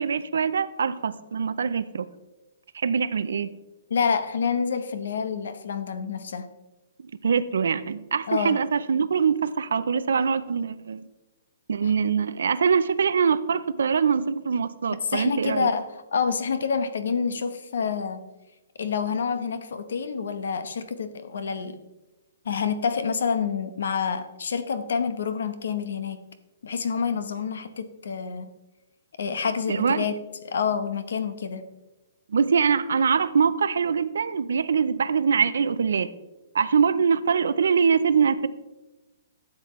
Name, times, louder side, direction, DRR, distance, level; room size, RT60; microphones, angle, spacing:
voice 1, 0.0-2.1 2.7-3.5 7.2-11.1 11.7-15.7 29.7-30.0 32.3-36.1 36.5-38.5, right 6 dB, 80° right, 15 dB, 0.5 m, -23 dB
voice 2, 3.9-6.5 8.3-8.6 15.0-18.2 18.8-21.8 22.4-26.2 26.6-28.5 29.2-30.1 30.4-31.6, left 6 dB, 70° left, 11 dB, 0.9 m, -27 dB
12.0 x 7.5 x 3.1 m, 1.1 s
hypercardioid pair, 175°, 0 cm